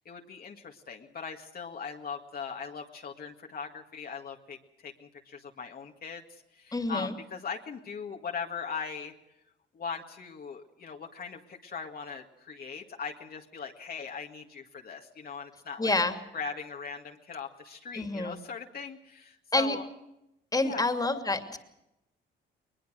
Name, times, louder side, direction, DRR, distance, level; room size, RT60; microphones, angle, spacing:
voice 1, 0.1-9.1 9.7-15.9 16.3-19.9 20.6-20.9, left 6 dB, 50° left, 2 dB, 2.0 m, -40 dB
voice 2, 6.7-7.1 15.8-16.2 17.9-18.4 19.5-19.8 20.5-21.6, left 2 dB, 20° left, 8 dB, 2.7 m, -28 dB
21.0 x 21.0 x 6.4 m, 0.87 s
cardioid pair, 90°, 20 cm